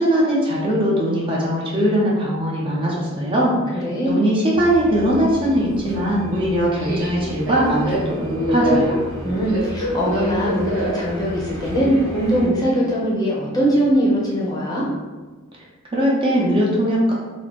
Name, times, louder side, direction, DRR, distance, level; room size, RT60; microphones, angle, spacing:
voice 1, 0.0-9.0 15.9-17.1, equal, 25° right, -5 dB, 0.6 m, -20 dB
voice 2, 3.8-4.2 9.2-14.9, equal, 20° left, -6 dB, 0.7 m, -21 dB
Subway metro underground, 4.5-12.5, equal, 70° right, 0.9 m, -27 dB
3.1 x 2.1 x 4.1 m, 1.3 s
head